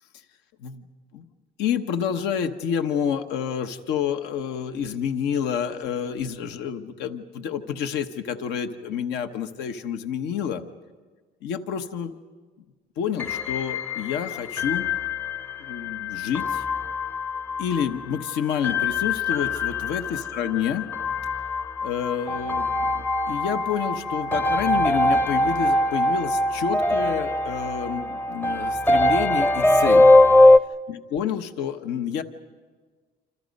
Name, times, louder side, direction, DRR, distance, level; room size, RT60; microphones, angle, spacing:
voice 1, 1.6-10.6 11.4-12.1 13.0-14.9 15.6-16.6 17.6-20.9 21.8-30.1 30.9-32.2, left 8 dB, 85° left, 8 dB, 1.1 m, -29 dB
sound 1, 13.2-30.6, left 2 dB, 10° left, 0.6 m, -22 dB
27.0 x 26.5 x 5.3 m, 1.4 s
cardioid pair, 110°, 17 cm